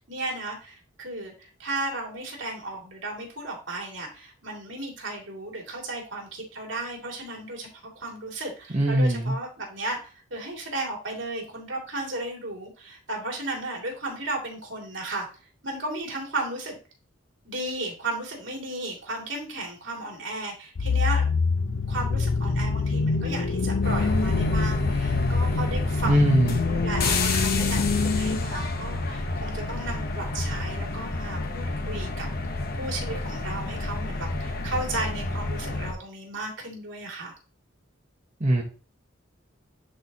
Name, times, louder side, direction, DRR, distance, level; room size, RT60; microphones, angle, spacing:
voice 1, 0.1-7.7 7.9-15.3 15.6-16.8 17.4-21.3 21.9-32.3 32.7-37.3, right 2 dB, 65° right, 0 dB, 2.6 m, -34 dB
voice 2, 8.7-9.4 26.0-26.6 38.4-38.6, right 1 dB, 35° right, -2 dB, 1.1 m, -21 dB
sound 1, 20.8-28.4, left 4 dB, 75° left, 0.6 m, -25 dB
sound 2, 23.8-35.9, left 2 dB, 50° left, 1.0 m, -29 dB
10.0 x 4.3 x 2.9 m, 0.36 s
head